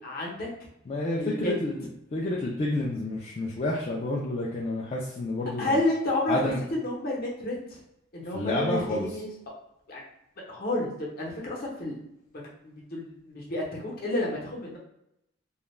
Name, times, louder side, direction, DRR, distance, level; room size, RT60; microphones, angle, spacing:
voice 1, 0.0-0.5 1.2-1.6 5.6-6.4 6.7-7.8 8.1-9.3 9.9-10.0 10.5-12.0 12.6-14.8, left 1 dB, 50° left, -3 dB, 0.8 m, -30 dB
voice 2, 0.9-5.8 6.3-6.6 8.3-9.1, left 1 dB, 35° left, -4 dB, 0.3 m, -29 dB
2.3 x 2.1 x 3.1 m, 0.82 s
head